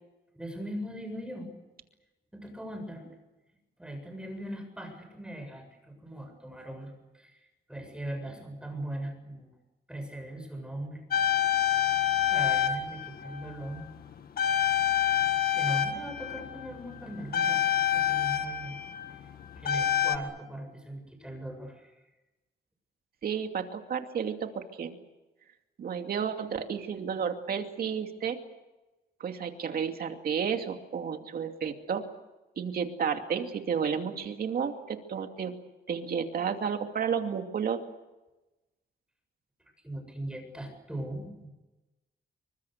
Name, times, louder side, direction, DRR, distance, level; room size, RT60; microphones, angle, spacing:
voice 1, 0.3-1.5 2.3-3.1 3.8-9.5 9.9-11.0 11.6-11.8 12.3-13.8 15.5-17.6 17.9-18.8 19.6-22.0 39.8-41.5, right 1 dB, 5° right, 5 dB, 7.5 m, -39 dB
sound 1, 11.1-14.0 14.4-20.2, left 10 dB, 55° left, 1.8 m, -27 dB
voice 2, 23.2-25.0 25.8-28.4 29.2-32.0 32.6-35.5 35.9-37.8, right 7 dB, 55° right, 5 dB, 2.6 m, -32 dB
28.0 x 24.5 x 6.7 m, 1.0 s
wide cardioid pair, 150°, 18 cm